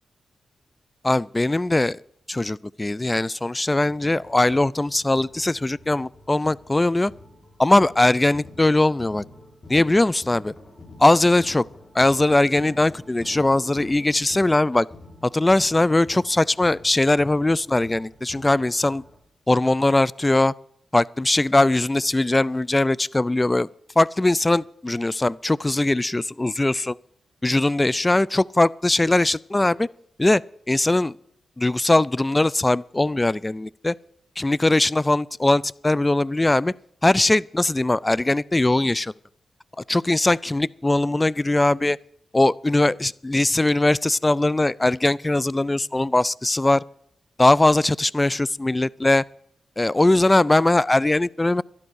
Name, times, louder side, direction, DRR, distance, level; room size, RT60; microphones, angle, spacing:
voice 1, 1.0-2.0 2.3-7.1 7.6-9.2 9.7-10.5 11.0-11.6 11.9-14.9 15.2-19.0 19.5-20.5 20.9-23.7 24.0-27.0 27.4-29.9 30.2-30.4 30.7-31.2 31.6-34.0 34.4-36.7 37.0-39.1 39.9-42.0 42.3-46.8 47.4-49.2 49.8-51.6, left 2 dB, 20° left, 0.4 m, -20 dB
sound 1, 3.9-19.2, left 2 dB, 45° left, 5.0 m, -47 dB
12.0 x 11.5 x 6.4 m
supercardioid pair, 45°, 0 cm